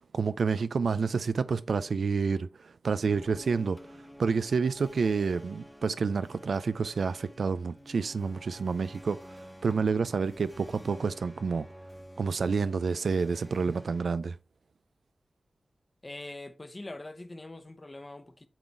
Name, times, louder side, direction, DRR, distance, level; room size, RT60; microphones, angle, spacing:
voice 1, 0.0-3.8 4.2-9.2 9.6-11.7 12.2-14.3, right 5 dB, 85° right, 0.4 m, -29 dB
sound 1, 3.0-14.1, equal, ahead, 1.1 m, -50 dB
voice 2, 16.0-18.5, left 2 dB, 30° left, 1.0 m, -43 dB
8.7 x 4.0 x 4.5 m
wide cardioid pair, 105°, 0 cm